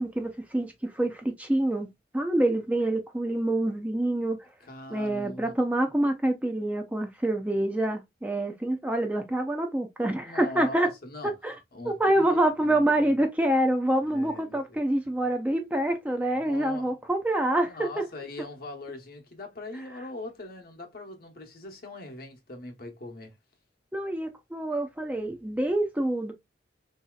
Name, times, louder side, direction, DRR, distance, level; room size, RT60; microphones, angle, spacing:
voice 1, 0.0-1.9 2.1-4.4 4.9-10.9 11.4-11.5 11.8-18.0 23.9-26.3, right 1 dB, 10° right, 0.5 m, -26 dB
voice 2, 4.6-5.6 10.2-11.3 11.7-13.2 14.0-14.8 16.3-16.9 17.6-23.4, left 2 dB, 55° left, 1.0 m, -41 dB
4.0 x 2.8 x 2.2 m
head